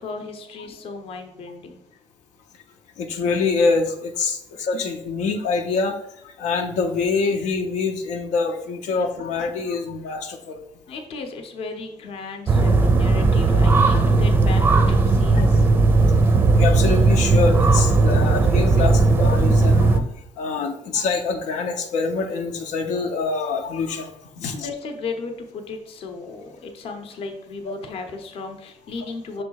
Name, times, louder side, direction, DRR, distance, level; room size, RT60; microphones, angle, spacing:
voice 1, 0.0-1.8 4.5-4.6 10.9-15.7 24.4-29.4, left 4 dB, 55° left, 5 dB, 0.8 m, -35 dB
voice 2, 3.0-6.0 6.2-10.6 13.5-13.6 13.9-14.0 15.4-15.5 16.6-20.0 20.4-24.1 24.4-24.7 27.7-27.8, left 4 dB, 85° left, 3 dB, 0.8 m, -25 dB
sound 1, 12.5-20.0, right 3 dB, 15° right, 0.5 m, -17 dB
6.3 x 3.3 x 4.7 m, 0.79 s
cardioid pair, 175°, 12 cm